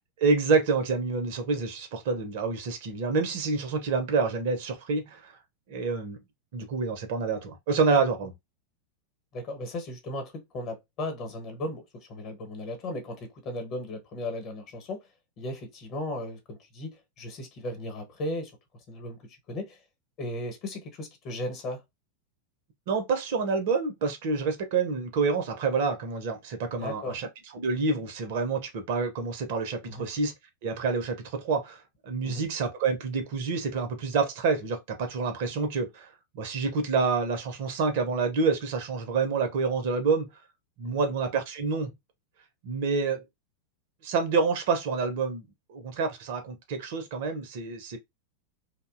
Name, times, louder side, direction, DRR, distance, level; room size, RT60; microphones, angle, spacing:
voice 1, 0.2-5.4 5.7-6.2 6.5-8.3 22.9-27.3 27.5-30.3 30.6-40.3 40.8-41.9 42.6-43.2 44.0-48.0, right 4 dB, 50° right, 0.6 m, -28 dB
voice 2, 9.3-15.1 15.4-18.5 18.9-19.8 20.2-21.8 26.8-27.2 29.8-30.1 32.2-32.4 40.8-41.1, left 1 dB, 35° left, 1.0 m, -36 dB
2.6 x 2.1 x 2.4 m
figure-of-eight pair, 90°, 0 cm